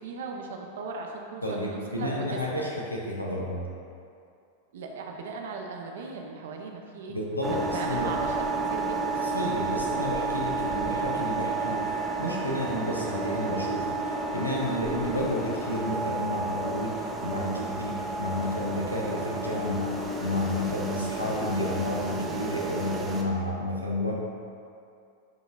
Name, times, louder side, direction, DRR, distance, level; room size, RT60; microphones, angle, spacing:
voice 1, 0.0-2.6 4.7-9.3, right 4 dB, 60° right, 1 dB, 0.7 m, -37 dB
voice 2, 1.4-3.7 7.1-8.1 9.2-19.9 20.2-24.1, left 1 dB, 85° left, -3 dB, 0.8 m, -31 dB
sound 1, 7.4-23.2, right 3 dB, 10° right, 0.7 m, -31 dB
10.5 x 3.9 x 2.5 m, 2.5 s
figure-of-eight pair, 90°, 0 cm